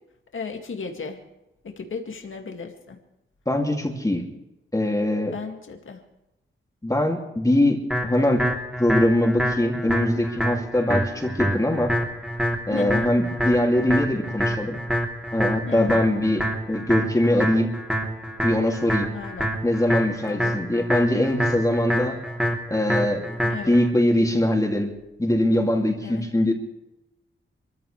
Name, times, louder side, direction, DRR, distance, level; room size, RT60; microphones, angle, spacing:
voice 1, 0.3-1.2 1.6-3.0 5.3-6.0 12.7-13.1 15.7-16.0 19.1-19.5 20.3-20.5 23.5-23.8 26.0-26.2, left 5 dB, 70° left, 3 dB, 2.3 m, -34 dB
voice 2, 3.5-4.2 4.7-5.4 6.8-8.5 8.8-12.0 12.7-14.8 15.3-17.7 18.4-19.1 19.6-22.2 22.7-24.9 25.2-26.5, left 1 dB, 15° left, 1 dB, 2.6 m, -22 dB
sound 1, 7.9-23.9, equal, 5° right, 3.2 m, -27 dB
26.0 x 14.5 x 3.3 m, 0.93 s
wide cardioid pair, 80°, 21 cm